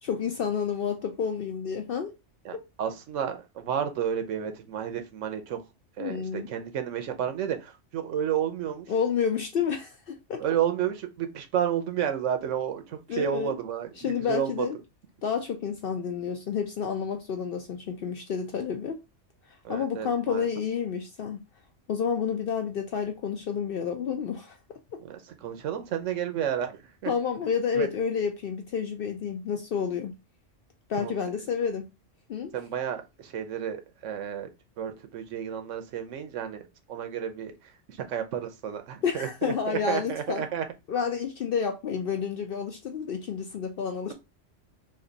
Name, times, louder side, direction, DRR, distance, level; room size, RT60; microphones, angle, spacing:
voice 1, 0.0-2.1 6.0-6.5 8.9-10.4 13.1-13.6 14.0-14.8 15.2-19.0 19.7-21.4 21.9-24.6 27.1-30.1 30.9-31.8 32.3-32.5 39.0-40.5 40.9-44.1, left 7 dB, 60° left, 0.6 m, -30 dB
voice 2, 2.4-5.6 6.0-8.9 10.4-14.7 19.6-20.5 25.0-27.1 27.7-27.9 31.0-31.1 32.5-34.5 34.8-37.5 38.1-40.6, right 9 dB, 85° right, 1.1 m, -31 dB
3.3 x 2.6 x 3.8 m
omnidirectional pair, 1.3 m